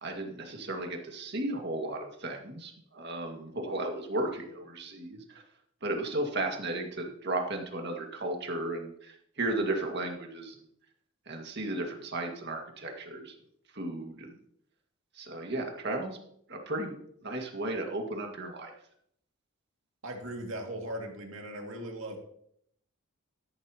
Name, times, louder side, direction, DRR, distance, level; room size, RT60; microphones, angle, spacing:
voice 1, 0.0-5.2 5.8-10.5 11.3-13.4 13.7-14.3 15.2-16.2 16.5-17.0 17.2-18.7, right 2 dB, 50° right, 2 dB, 1.9 m, -34 dB
voice 2, 20.0-22.2, right 1 dB, 65° right, 2 dB, 2.3 m, -38 dB
13.0 x 11.0 x 2.9 m, 0.69 s
head